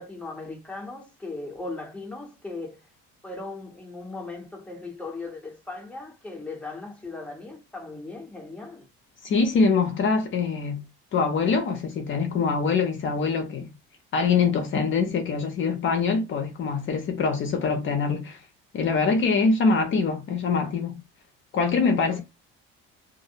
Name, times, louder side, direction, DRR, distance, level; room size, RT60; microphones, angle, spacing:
voice 1, 0.0-2.8 3.2-8.9 22.1-22.2, left 3 dB, 5° left, 0.7 m, -38 dB
voice 2, 9.2-10.8 11.1-13.7 14.1-18.4 18.7-21.0 21.5-22.2, left 4 dB, 40° left, 0.5 m, -24 dB
2.5 x 2.0 x 2.7 m
cardioid pair, 135°, 30 cm